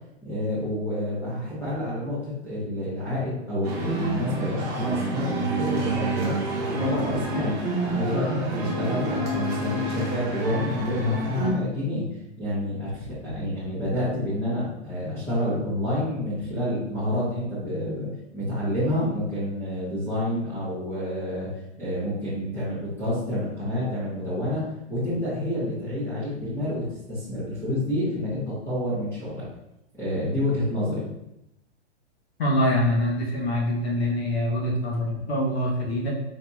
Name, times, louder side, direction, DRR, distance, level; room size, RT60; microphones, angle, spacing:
voice 1, 0.2-7.5 7.9-12.0 12.4-21.5 21.8-24.6 24.9-29.4 30.0-31.1, left 1 dB, 5° left, -10 dB, 0.7 m, -28 dB
sound 1, 3.6-11.5, right 2 dB, 35° right, 1.2 m, -28 dB
voice 2, 32.4-36.1, left 1 dB, 60° left, -3 dB, 1.3 m, -24 dB
3.9 x 2.8 x 2.3 m, 0.85 s
hypercardioid pair, 165°, 35 cm